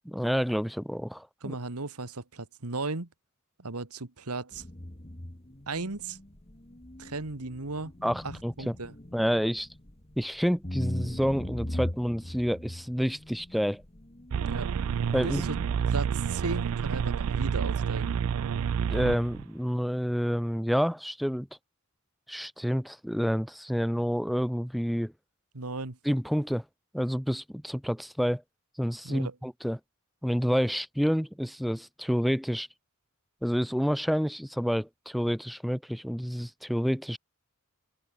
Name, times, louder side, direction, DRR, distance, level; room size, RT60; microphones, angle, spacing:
voice 1, 0.1-1.5 8.0-8.7 9.1-9.7 10.2-13.8 15.1-15.5 18.9-21.5 22.3-25.1 26.0-26.6 26.9-28.4 28.8-29.8 30.2-32.7 33.4-37.2, equal, ahead, 0.4 m, -29 dB
voice 2, 1.4-3.1 3.6-4.6 5.7-6.2 7.0-7.9 8.2-8.9 14.5-14.7 15.2-15.5 15.9-18.1 25.5-26.0 29.0-29.3, right 3 dB, 85° right, 1.9 m, -36 dB
sound 1, 4.5-16.0, left 1 dB, 25° left, 1.8 m, -40 dB
sound 2, 14.3-19.4, right 7 dB, 65° right, 0.3 m, -29 dB
open air
head